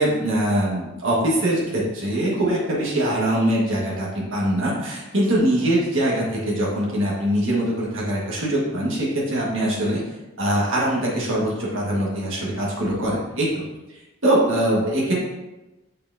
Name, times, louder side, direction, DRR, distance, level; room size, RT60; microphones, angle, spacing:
voice 1, 0.0-10.0 10.4-13.5 14.2-15.2, right 1 dB, 65° right, -5 dB, 1.7 m, -22 dB
6.7 x 5.7 x 2.7 m, 1.0 s
head